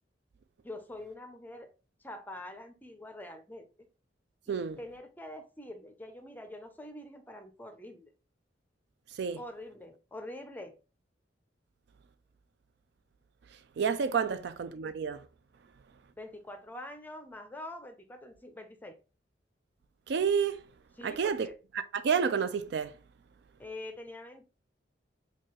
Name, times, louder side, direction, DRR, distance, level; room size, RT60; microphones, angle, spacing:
voice 1, 0.6-1.7 2.0-3.7 4.5-8.1 9.4-10.7 14.2-14.4 16.2-19.0 21.0-21.5 23.6-24.5, left 1 dB, 10° left, 0.5 m, -45 dB
voice 2, 4.5-4.8 9.2-9.4 13.8-15.2 20.1-20.7 21.0-21.5 21.9-22.9, right 6 dB, 65° right, 0.4 m, -29 dB
4.6 x 2.3 x 2.9 m
head